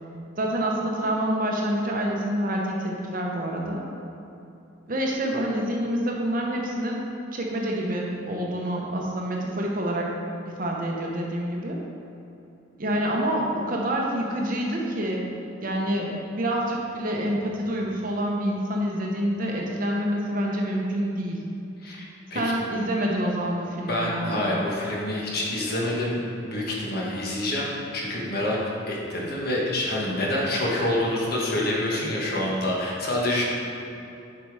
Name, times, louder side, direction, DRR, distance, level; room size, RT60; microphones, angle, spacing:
voice 1, 0.4-3.8 4.9-10.1 10.5-11.8 12.8-15.3 15.6-21.4 22.3-24.5, right 1 dB, 45° right, -1 dB, 0.9 m, -27 dB
voice 2, 21.8-22.4 23.9-28.6 28.9-33.4, left 1 dB, 50° left, -3 dB, 1.4 m, -27 dB
7.4 x 5.1 x 4.8 m, 2.8 s
head